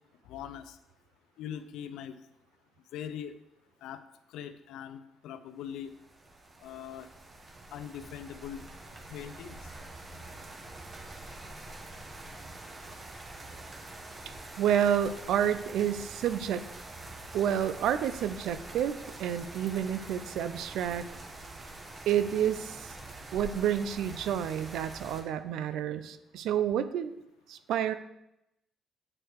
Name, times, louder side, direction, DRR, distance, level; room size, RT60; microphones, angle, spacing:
voice 1, 0.2-0.8 1.4-2.2 2.9-3.3 3.8-5.9 6.6-7.1 7.7-8.6 9.1-9.7 10.1-10.2, left 9 dB, 90° left, 12 dB, 0.5 m, -42 dB
sound 1, 5.7-25.2, right 2 dB, 35° right, 1.3 m, -45 dB
voice 2, 14.6-16.6 17.3-21.0 22.1-23.0 23.3-27.1 27.5-27.9, right 9 dB, 85° right, 12 dB, 0.5 m, -29 dB
8.7 x 4.6 x 4.7 m, 0.86 s
cardioid pair, 90°, 0 cm